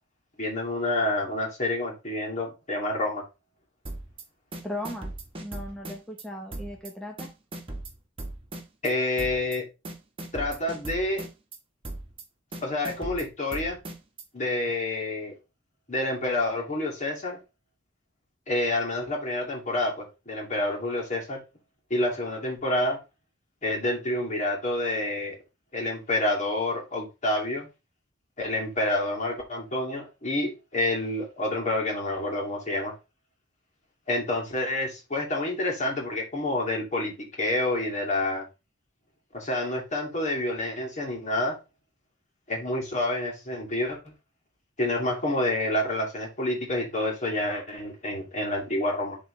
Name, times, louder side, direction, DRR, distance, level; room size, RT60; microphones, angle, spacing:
voice 1, 0.4-3.2 8.8-9.6 10.3-11.2 12.6-13.8 14.3-15.3 15.9-17.4 18.5-21.4 21.9-23.0 23.6-25.3 25.7-27.7 28.4-32.9 34.1-38.4 39.3-41.6 42.5-44.1 44.8-49.2, left 1 dB, 40° left, 2.5 m, -28 dB
sound 1, 3.9-4.2 4.5-6.2 6.5-6.9 7.2-8.9 9.2-9.6 9.9-11.6 11.8-12.2 12.5-14.2, right 1 dB, 30° right, 1.4 m, -38 dB
voice 2, 4.6-5.1 5.4-7.3, left 1 dB, 5° left, 0.9 m, -37 dB
11.0 x 3.8 x 3.2 m
head